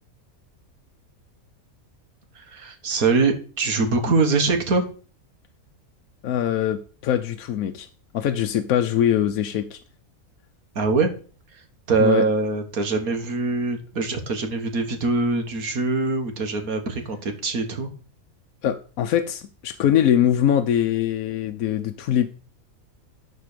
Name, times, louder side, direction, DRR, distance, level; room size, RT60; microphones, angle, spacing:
voice 1, 2.4-4.8 10.8-11.1 11.9-17.9, right 3 dB, 90° right, 2.1 m, -23 dB
voice 2, 6.2-7.9 8.1-9.8 12.0-12.3 18.6-22.3, left 10 dB, 85° left, 1.2 m, -22 dB
12.0 x 4.2 x 6.7 m
omnidirectional pair, 1.5 m